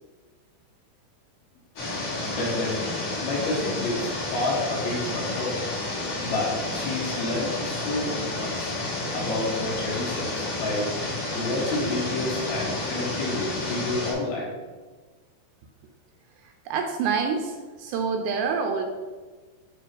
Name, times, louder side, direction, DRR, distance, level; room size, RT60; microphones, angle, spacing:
sound 1, 1.8-14.1, left 2 dB, 40° left, 2.9 m, -30 dB
voice 1, 2.3-2.9 3.2-5.6 6.2-8.7 9.1-10.9 11.3-14.5, left 2 dB, 65° left, -4 dB, 2.9 m, -29 dB
voice 2, 16.7-18.9, right 5 dB, 80° right, 4 dB, 2.6 m, -27 dB
8.5 x 3.6 x 5.1 m, 1.4 s
omnidirectional pair, 5.3 m